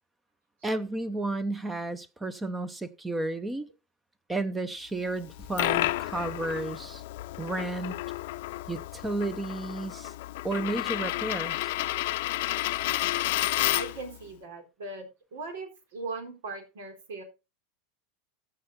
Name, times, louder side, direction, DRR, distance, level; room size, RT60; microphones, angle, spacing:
voice 1, 0.6-3.7 4.3-7.0 7.4-7.9 8.7-10.1 10.4-11.7, right 2 dB, 10° right, 0.7 m, -32 dB
Coin (dropping), 5.2-14.1, left 17 dB, 70° left, 0.6 m, -31 dB
voice 2, 13.7-15.1 15.3-17.2, right 3 dB, 85° right, 4.4 m, -39 dB
14.5 x 5.6 x 4.2 m
supercardioid pair, 135°, 0 cm